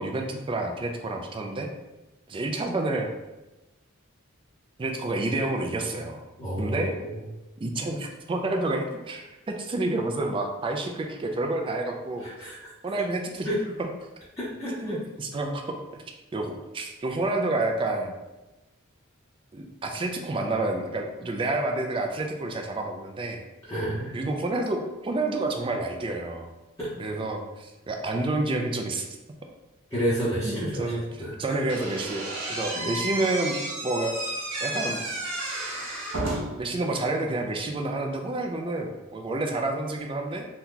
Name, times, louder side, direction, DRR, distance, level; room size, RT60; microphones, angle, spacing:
voice 1, 0.0-1.7 2.3-3.1 4.8-6.2 6.6-7.0 7.6-12.5 12.8-13.5 13.8-13.9 14.7-15.8 16.3-18.2 19.5-23.4 24.1-26.5 27.0-29.1 30.4-34.3 34.6-35.0 36.6-40.5, right 2 dB, 25° right, 3 dB, 0.3 m, -29 dB
voice 2, 6.4-7.2 12.2-12.7 13.4-13.6 14.4-15.0 23.7-24.2 26.8-26.9 29.9-31.6 32.7-32.8, equal, 15° left, -12 dB, 0.8 m, -30 dB
Slam / Squeak, 31.7-36.7, right 2 dB, 65° right, 0.8 m, -32 dB
2.8 x 2.2 x 3.8 m, 1.0 s
head